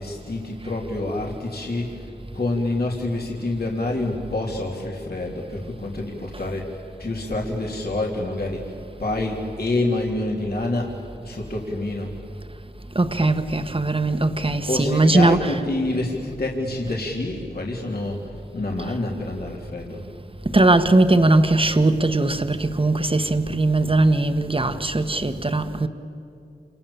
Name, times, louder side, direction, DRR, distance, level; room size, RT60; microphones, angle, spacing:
voice 1, 0.0-8.6 9.0-10.9 11.2-12.1 14.7-20.0, left 2 dB, 65° left, 3.5 m, -27 dB
voice 2, 12.9-15.6 18.9-19.0 20.5-25.9, right 2 dB, 30° right, 1.5 m, -19 dB
28.5 x 27.5 x 7.2 m
wide cardioid pair, 60°, 18 cm